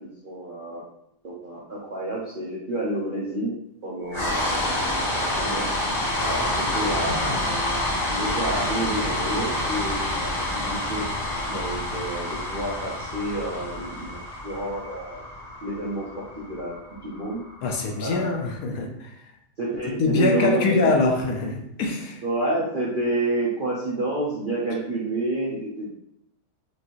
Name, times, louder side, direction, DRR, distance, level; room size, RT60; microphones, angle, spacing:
voice 1, 0.2-0.8 1.2-3.5 3.8-5.7 6.2-7.8 8.1-11.0 11.5-15.2 15.6-17.4 18.0-18.3 19.6-20.9 22.2-25.9, right 2 dB, 55° right, -5 dB, 0.5 m, -29 dB
sound 1, 4.1-18.2, left 1 dB, 30° left, 1.0 m, -28 dB
voice 2, 7.1-7.4 17.6-19.1 20.0-22.2, left 3 dB, 70° left, 2 dB, 1.0 m, -24 dB
4.8 x 2.6 x 2.9 m, 0.75 s
omnidirectional pair, 1.7 m